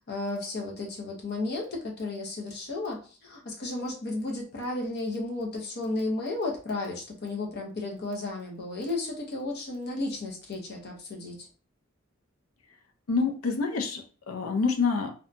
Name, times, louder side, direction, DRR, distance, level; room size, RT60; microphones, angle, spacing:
voice 1, 0.1-11.5, left 2 dB, 50° left, 0 dB, 0.8 m, -33 dB
voice 2, 13.1-15.1, left 4 dB, 90° left, 4 dB, 0.5 m, -27 dB
2.7 x 2.2 x 2.5 m, 0.37 s
head